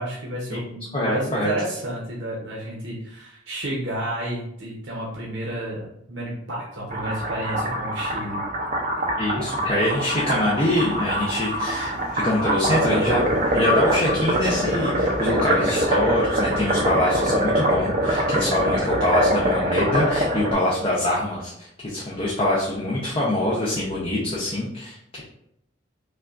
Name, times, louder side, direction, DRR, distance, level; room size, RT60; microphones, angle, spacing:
voice 1, 0.0-8.5, right 1 dB, 65° right, -4 dB, 0.9 m, -31 dB
voice 2, 0.9-1.5 9.2-13.2 13.5-25.2, left 1 dB, 30° left, -5 dB, 0.7 m, -24 dB
sound 1, 6.9-20.5, right 1 dB, 40° right, 0.6 m, -24 dB
sound 2, 10.0-15.5, equal, 50° left, 1.3 m, -40 dB
5.5 x 2.4 x 2.5 m, 0.77 s
head